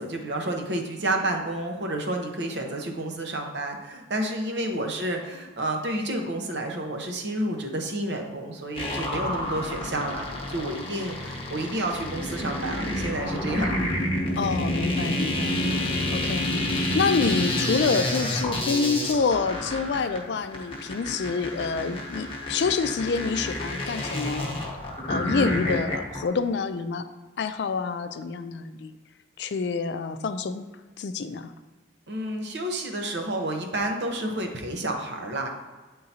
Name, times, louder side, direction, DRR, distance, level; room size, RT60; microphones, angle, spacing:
voice 1, 0.0-13.8 15.6-16.2 32.1-35.5, right 1 dB, 70° right, 3 dB, 0.9 m, -30 dB
sound 1, 8.7-26.2, left 1 dB, 30° left, 1.0 m, -29 dB
voice 2, 14.4-15.7 16.1-24.6 25.1-27.1 27.4-28.9 29.4-30.6 31.0-31.5, left 4 dB, 65° left, 10 dB, 0.4 m, -27 dB
8.9 x 3.7 x 2.8 m, 1.3 s
head